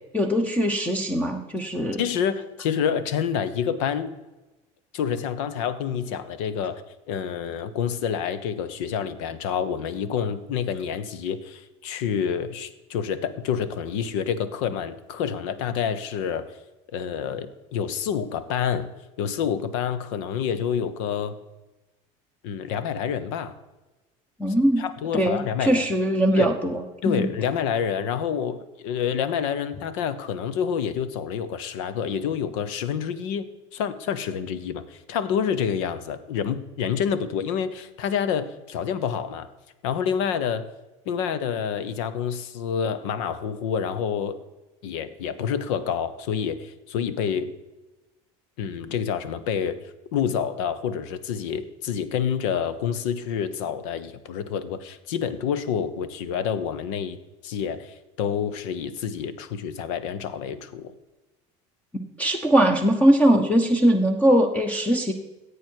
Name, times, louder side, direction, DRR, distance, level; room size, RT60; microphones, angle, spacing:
voice 1, 0.1-2.0 24.4-24.9 25.1-27.3 62.2-65.1, right 1 dB, 10° left, 6 dB, 0.9 m, -21 dB
voice 2, 2.0-4.1 4.9-6.8 7.1-16.5 16.9-18.9 19.2-21.4 22.4-23.6 24.5-25.8 26.3-26.5 27.0-39.5 39.8-40.7 41.1-44.4 44.8-47.5 48.6-49.8 50.1-60.9, left 7 dB, 85° left, 14 dB, 1.0 m, -28 dB
15.5 x 8.4 x 4.6 m, 1.1 s
supercardioid pair, 125°, 15 cm